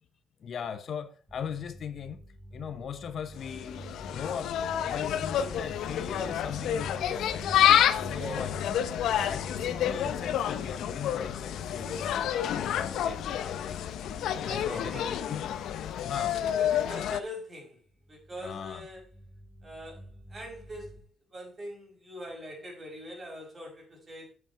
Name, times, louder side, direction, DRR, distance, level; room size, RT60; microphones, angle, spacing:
voice 1, 0.4-2.2 2.5-4.6 4.8-7.5 8.0-8.8 9.2-14.0 14.4-15.4 16.0-16.3 18.4-18.8, left 7 dB, 60° left, 0.9 m, -39 dB
sound 1, 1.3-17.2 17.9-21.0, equal, ahead, 2.2 m, -47 dB
Insect, 3.4-17.2, left 10 dB, 80° left, 0.7 m, -29 dB
voice 2, 8.1-8.5 14.4-15.3 16.1-17.8 18.1-19.0 19.6-21.0 21.3-24.3, equal, 35° right, 5.4 m, -42 dB
8.3 x 7.4 x 4.5 m
cardioid pair, 90°, 0 cm